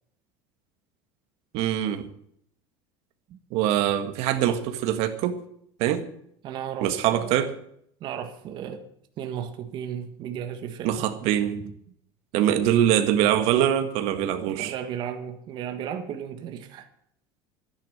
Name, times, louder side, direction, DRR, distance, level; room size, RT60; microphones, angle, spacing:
voice 1, 1.5-2.1 3.5-5.4 5.8-6.1 6.8-7.5 10.8-11.7 12.3-14.7, right 11 dB, 60° right, 1.6 m, -23 dB
voice 2, 6.4-7.5 8.0-8.9 9.2-11.1 14.5-16.9, right 8 dB, 40° right, 1.5 m, -35 dB
12.0 x 10.5 x 7.9 m
cardioid pair, 165°, 12 cm